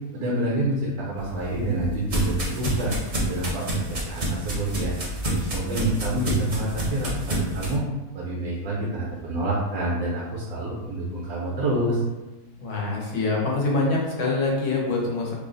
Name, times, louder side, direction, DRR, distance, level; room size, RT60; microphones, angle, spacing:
voice 1, 0.1-2.9 3.3-4.9 5.3-7.1 7.5-7.8 8.1-12.0, right 1 dB, 75° right, -4 dB, 1.1 m, -28 dB
sound 1, 1.2-7.8, right 1 dB, 40° right, 0.7 m, -28 dB
voice 2, 12.6-15.3, left 3 dB, 85° left, -3 dB, 1.4 m, -25 dB
3.2 x 2.0 x 3.7 m, 1.1 s
omnidirectional pair, 1.6 m